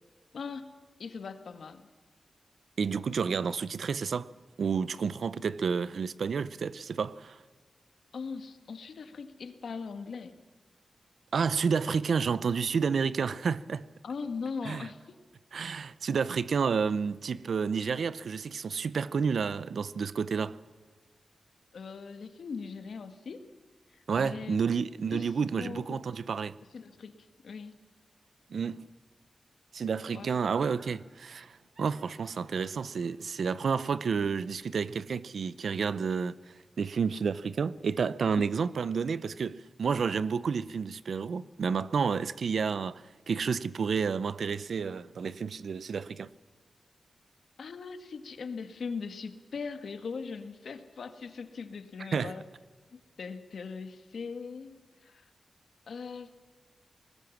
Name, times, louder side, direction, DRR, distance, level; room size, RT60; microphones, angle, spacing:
voice 1, 0.3-1.8 8.1-10.3 14.0-15.0 21.7-23.5 24.2-24.6 25.1-25.3 25.6-26.0 26.7-27.2 27.4-27.7 30.1-30.4 38.4-38.5 47.6-52.4 52.9-55.3 55.9-56.3, left 5 dB, 80° left, 1.7 m, -40 dB
voice 2, 2.8-4.3 4.6-7.4 11.3-13.9 14.6-14.9 15.5-20.6 24.1-26.5 28.5-28.8 29.7-36.4 36.8-46.3 52.1-52.3, right 6 dB, 75° right, 0.7 m, -30 dB
Laughter, 30.2-31.0 31.8-34.9 35.2-35.3, right 1 dB, 45° right, 7.1 m, -58 dB
20.5 x 19.0 x 7.2 m
wide cardioid pair, 125°, 0 cm